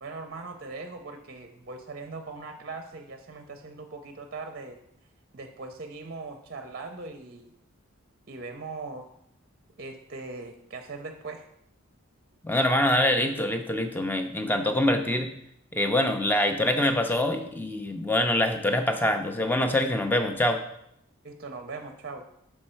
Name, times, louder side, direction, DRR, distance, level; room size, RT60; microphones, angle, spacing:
voice 1, 0.0-4.8 5.3-7.5 8.3-9.1 9.8-11.5 21.2-22.3, right 3 dB, 45° right, 5 dB, 0.5 m, -40 dB
voice 2, 12.4-15.3 15.7-20.6, left 1 dB, 10° left, 6 dB, 0.4 m, -25 dB
6.5 x 4.4 x 4.3 m, 0.77 s
head